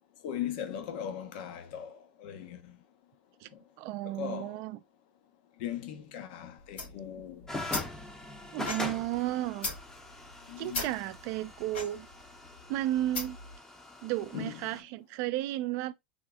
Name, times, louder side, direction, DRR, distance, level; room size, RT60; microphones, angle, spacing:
voice 1, 0.2-2.8 4.0-4.6 5.6-7.5 10.5-10.8 14.3-14.6, left 9 dB, 60° left, 0.7 m, -39 dB
voice 2, 3.8-4.8 8.5-9.7 10.6-12.1 12.7-13.4 14.0-15.9, right 14 dB, 50° right, 0.4 m, -33 dB
sound 1, 6.6-13.6, left 3 dB, 85° left, 1.9 m, -40 dB
sound 2, 7.5-14.8, left 2 dB, 10° left, 0.6 m, -42 dB
3.5 x 2.0 x 3.5 m
supercardioid pair, 130°, 6 cm